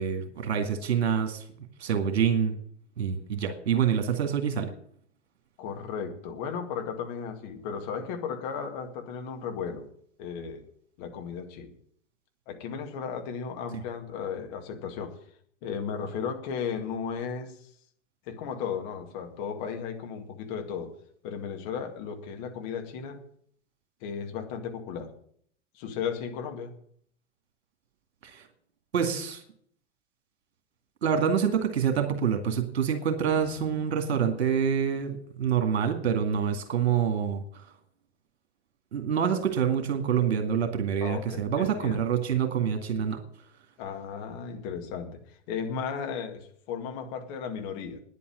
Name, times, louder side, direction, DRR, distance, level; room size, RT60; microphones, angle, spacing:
voice 1, 0.0-1.4 1.8-2.6 3.0-4.7 28.2-28.4 28.9-29.4 31.0-37.4 38.9-43.2, right 7 dB, 60° right, 7 dB, 2.3 m, -26 dB
voice 2, 5.6-9.9 10.2-10.6 11.0-11.7 12.5-15.2 15.6-17.7 18.3-20.9 21.2-23.2 24.0-25.1 25.7-26.7 33.4-34.0 41.0-42.0 43.8-45.2 45.5-48.0, left 6 dB, 35° left, 4 dB, 2.1 m, -35 dB
10.0 x 8.4 x 9.9 m, 0.62 s
figure-of-eight pair, 100°, 36 cm